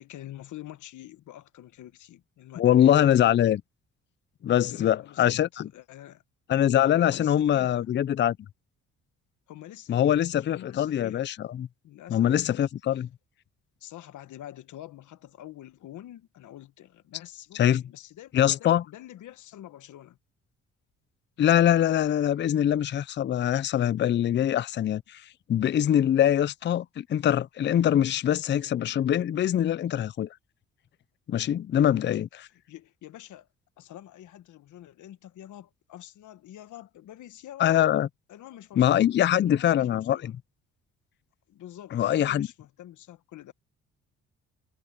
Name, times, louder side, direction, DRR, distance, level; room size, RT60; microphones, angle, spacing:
voice 1, 0.0-3.3 4.6-6.2 7.0-7.9 9.5-11.3 11.8-12.3 12.9-13.0 13.8-20.2 31.8-32.2 32.7-33.5 33.8-37.8 38.3-40.4 41.5-43.5, left 13 dB, 75° left, 1.4 m, -46 dB
voice 2, 2.6-3.6 4.4-5.7 6.5-8.4 9.9-11.7 12.1-13.1 17.5-17.8 18.3-18.8 21.4-25.2 25.5-30.3 31.3-32.3 37.6-38.1 38.8-40.3 41.9-42.5, left 11 dB, 40° left, 0.4 m, -23 dB
cardioid pair, 90°, 30 cm